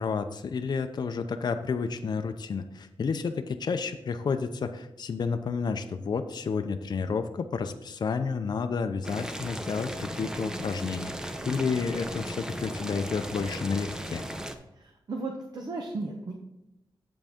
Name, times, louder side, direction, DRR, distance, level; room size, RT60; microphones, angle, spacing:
voice 1, 0.0-11.1 11.5-14.3, left 5 dB, 50° left, 7 dB, 0.5 m, -30 dB
Boiling, 9.0-14.6, equal, 5° right, 0.6 m, -36 dB
voice 2, 14.8-16.3, right 3 dB, 50° right, 2 dB, 0.9 m, -35 dB
7.8 x 7.5 x 3.6 m, 0.89 s
wide cardioid pair, 150°, 9 cm